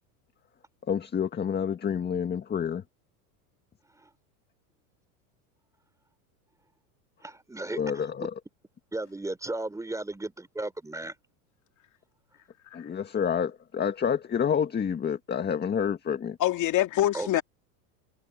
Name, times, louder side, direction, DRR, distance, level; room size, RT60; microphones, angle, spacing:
voice 1, 0.8-2.8 7.7-8.3 12.7-16.4, left 7 dB, 20° left, 2.0 m, -28 dB
voice 2, 7.2-8.3 8.9-11.2 17.1-17.4, right 2 dB, 5° right, 3.8 m, -35 dB
voice 3, 16.4-17.4, left 13 dB, 40° left, 2.8 m, -25 dB
supercardioid pair, 130°, 47 cm